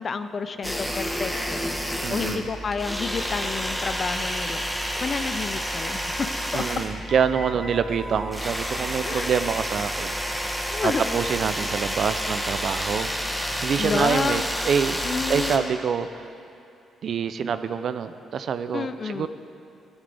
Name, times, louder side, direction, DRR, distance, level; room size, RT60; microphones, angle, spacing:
voice 1, 0.0-1.7 2.1-4.7 5.0-6.3 6.5-6.6 9.0-9.4 10.7-11.2 13.8-14.5 15.0-15.7 18.7-19.3, left 5 dB, 45° left, 10 dB, 0.6 m, -30 dB
sound 1, 0.6-15.6, equal, ahead, 1.3 m, -29 dB
voice 2, 2.0-2.5 6.5-16.2 17.0-19.3, right 7 dB, 65° right, 11 dB, 0.5 m, -26 dB
15.5 x 11.5 x 3.5 m, 2.6 s
cardioid pair, 70°, 0 cm